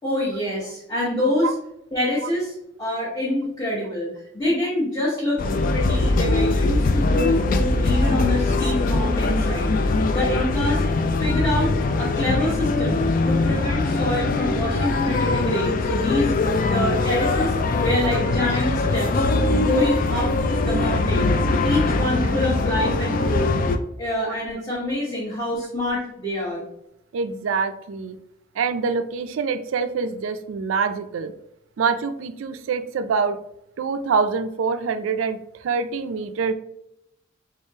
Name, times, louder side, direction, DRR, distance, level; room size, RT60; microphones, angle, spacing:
voice 1, 0.0-1.5 1.9-4.1 4.3-5.4 5.7-9.7 10.1-10.8 11.1-11.7 12.0-16.3 16.7-19.2 19.5-20.3 20.6-21.3 21.6-23.5 24.0-26.6, left 1 dB, 20° left, -8 dB, 1.0 m, -26 dB
sound 1, 5.4-23.8, left 2 dB, 45° left, 0.3 m, -22 dB
voice 2, 27.1-28.2 28.6-31.3 31.8-33.4 33.8-36.5, right 5 dB, 80° right, 10 dB, 0.3 m, -25 dB
3.6 x 3.5 x 2.7 m, 0.80 s
head